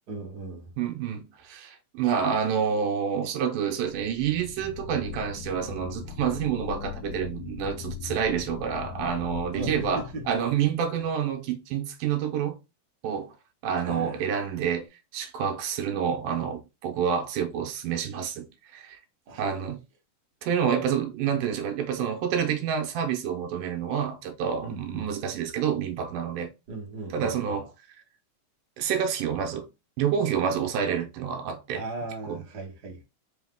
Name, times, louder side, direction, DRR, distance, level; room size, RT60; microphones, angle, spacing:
voice 1, 0.1-0.7 9.5-10.2 13.8-14.4 19.3-19.4 24.6-25.1 26.7-27.6 31.7-33.0, right 2 dB, 60° right, 1.0 m, -37 dB
voice 2, 0.8-12.6 13.0-13.3 13.6-14.9 15.1-19.0 19.4-19.8 20.4-26.5 27.1-27.7 28.8-29.7 30.0-31.8 32.2-32.4, right 8 dB, 85° right, 2.3 m, -28 dB
sound 1, 3.8-10.8, left 7 dB, 85° left, 1.6 m, -39 dB
5.3 x 2.1 x 3.5 m
omnidirectional pair, 3.6 m